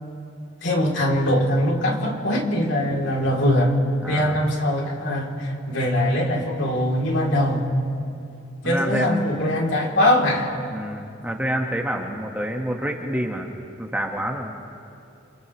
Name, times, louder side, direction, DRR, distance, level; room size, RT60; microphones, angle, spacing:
voice 1, 0.6-3.8 4.1-7.7 8.6-10.5, left 1 dB, 70° left, -1 dB, 3.3 m, -22 dB
voice 2, 4.0-4.4 8.6-9.2 10.7-13.5 13.8-14.6, equal, 10° right, 1 dB, 1.5 m, -27 dB
29.0 x 28.5 x 3.2 m, 2.6 s
head